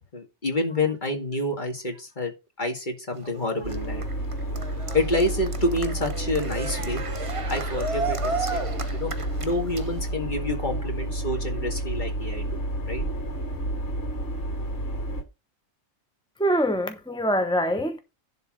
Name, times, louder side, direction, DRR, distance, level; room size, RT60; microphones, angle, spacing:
voice 1, 0.1-2.3 2.6-4.0 4.9-7.0 7.5-9.1 9.4-13.0, left 2 dB, 35° left, 2.3 m, -28 dB
Cheering, 3.1-10.1, right 3 dB, 30° right, 0.8 m, -34 dB
sound 1, 3.6-15.2, right 1 dB, 55° left, 2.9 m, -30 dB
voice 2, 16.4-18.0, equal, 5° left, 0.7 m, -24 dB
11.0 x 4.0 x 6.1 m
omnidirectional pair, 1.4 m